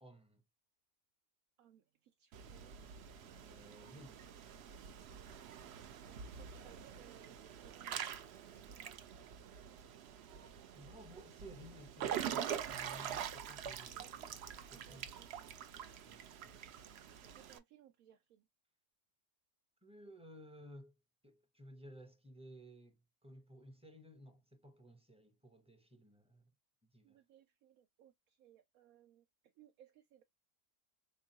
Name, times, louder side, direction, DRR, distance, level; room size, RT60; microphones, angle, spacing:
voice 1, 0.0-0.4 3.1-4.2 6.6-6.8 10.7-14.4 14.7-15.1 16.0-16.7 19.8-20.9 21.2-26.5 26.9-27.2, equal, 5° right, 0.6 m, -57 dB
voice 2, 1.6-2.7 5.6-9.8 11.1-11.2 14.0-14.3 14.7-16.3 17.2-18.5 27.0-30.2, right 10 dB, 90° right, 1.1 m, -65 dB
Water / Splash splatter / Drip, 2.3-17.6, right 9 dB, 65° right, 0.7 m, -45 dB
3.8 x 3.0 x 2.7 m
omnidirectional pair, 1.4 m